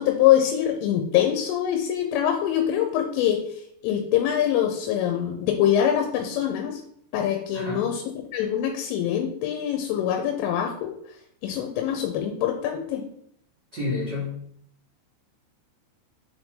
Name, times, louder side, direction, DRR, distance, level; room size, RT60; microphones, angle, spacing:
voice 1, 0.0-3.4 3.8-6.8 7.1-8.0 8.3-10.9 11.4-13.0, left 10 dB, 90° left, 4 dB, 3.3 m, -24 dB
voice 2, 7.5-7.9 13.7-14.5, left 3 dB, 80° right, -8 dB, 0.9 m, -30 dB
6.9 x 5.0 x 3.7 m, 0.70 s
omnidirectional pair, 5.5 m